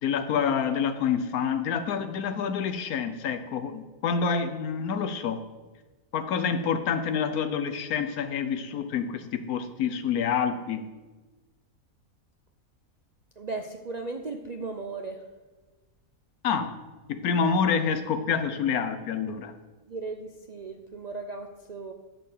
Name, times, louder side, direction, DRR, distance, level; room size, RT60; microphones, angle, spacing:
voice 1, 0.0-5.4 6.1-10.9 16.4-16.7 17.1-19.5, left 6 dB, 80° left, 10 dB, 1.2 m, -27 dB
voice 2, 13.4-15.2 19.9-21.9, right 3 dB, 55° right, 5 dB, 0.4 m, -36 dB
11.0 x 4.4 x 7.3 m, 1.2 s
omnidirectional pair, 1.5 m